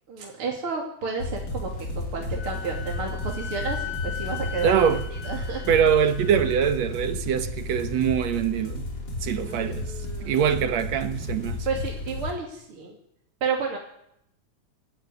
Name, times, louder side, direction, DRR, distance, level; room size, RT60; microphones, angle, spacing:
voice 1, 0.1-1.7 1.9-4.9 5.2-5.6 9.4-10.4 11.7-13.0 13.4-13.8, right 5 dB, 45° right, 3.4 m, -31 dB
sound 1, 1.2-12.3, left 2 dB, 35° left, 4.8 m, -33 dB
Wind instrument woodwind instrument, 2.4-6.8, left 8 dB, 65° left, 4.1 m, -38 dB
voice 2, 4.6-5.1 5.7-8.9 9.2-9.9 10.2-11.7, right 8 dB, 65° right, 2.3 m, -23 dB
28.0 x 13.5 x 9.9 m
omnidirectional pair, 3.5 m